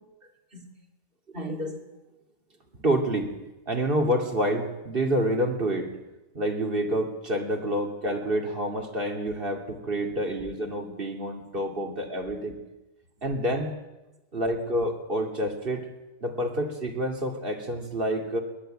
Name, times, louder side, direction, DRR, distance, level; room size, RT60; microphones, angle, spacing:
voice 1, 1.3-1.8 2.7-3.3 3.7-5.9 6.3-12.6 13.2-13.7 14.3-15.9 16.2-18.4, right 1 dB, 30° right, 3 dB, 2.8 m, -28 dB
22.0 x 19.5 x 9.0 m, 1.0 s
omnidirectional pair, 1.8 m